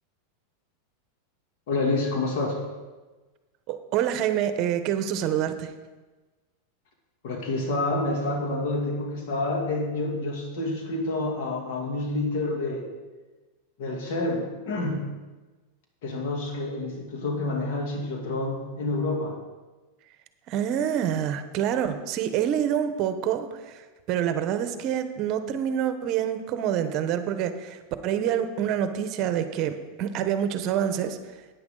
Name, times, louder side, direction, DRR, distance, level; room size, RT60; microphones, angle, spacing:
voice 1, 1.7-2.6 7.2-12.9 13.8-15.1 16.0-19.4, left 2 dB, 65° left, 1 dB, 2.4 m, -28 dB
voice 2, 3.7-5.7 20.5-31.2, right 9 dB, 45° right, 10 dB, 0.9 m, -27 dB
10.5 x 9.4 x 3.9 m, 1.2 s
hypercardioid pair, 120°, 0 cm